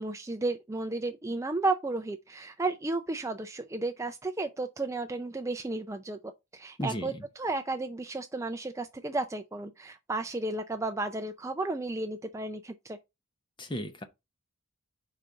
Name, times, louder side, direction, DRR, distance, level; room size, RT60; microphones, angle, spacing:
voice 1, 0.0-13.0, right 2 dB, 15° right, 0.4 m, -33 dB
voice 2, 6.8-7.2 13.6-14.0, left 1 dB, 20° left, 0.7 m, -35 dB
5.0 x 3.9 x 5.5 m
head